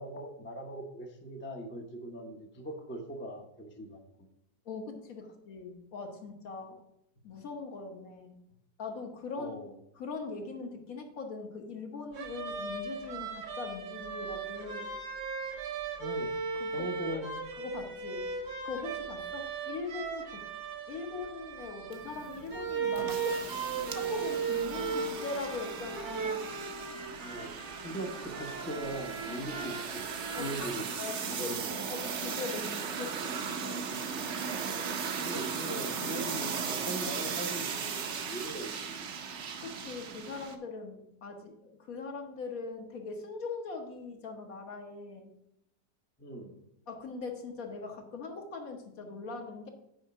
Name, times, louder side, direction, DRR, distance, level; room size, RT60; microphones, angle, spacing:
voice 1, 0.0-4.0 9.4-9.7 16.0-16.3 16.7-17.3 27.2-27.5 27.8-30.1 30.4-31.9 35.2-39.2 46.2-46.5, right 1 dB, 10° left, 2 dB, 0.6 m, -40 dB
voice 2, 4.6-6.8 7.2-8.4 8.8-9.6 10.0-14.9 16.5-16.9 17.5-18.3 18.6-20.4 20.9-26.5 30.4-33.8 39.6-45.3 46.9-49.7, left 4 dB, 60° left, 3 dB, 1.5 m, -41 dB
sound 1, 12.1-30.7, right 5 dB, 75° right, 2.0 m, -37 dB
sound 2, 21.9-40.6, right 6 dB, 55° right, 0.9 m, -37 dB
6.3 x 5.1 x 6.8 m, 0.81 s
omnidirectional pair, 1.7 m